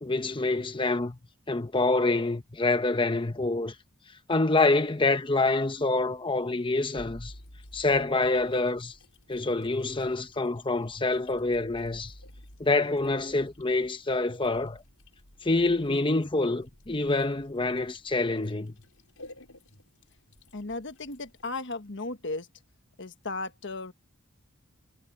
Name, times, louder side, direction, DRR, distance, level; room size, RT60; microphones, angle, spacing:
voice 1, 0.0-1.2 1.5-3.7 4.3-7.3 7.7-8.9 9.3-12.1 12.6-14.8 15.4-18.7, left 2 dB, 25° left, 1.0 m, -26 dB
sound 1, 7.0-21.5, left 1 dB, 85° left, 5.8 m, -53 dB
voice 2, 20.5-22.5 23.0-23.9, left 3 dB, 55° left, 1.4 m, -35 dB
head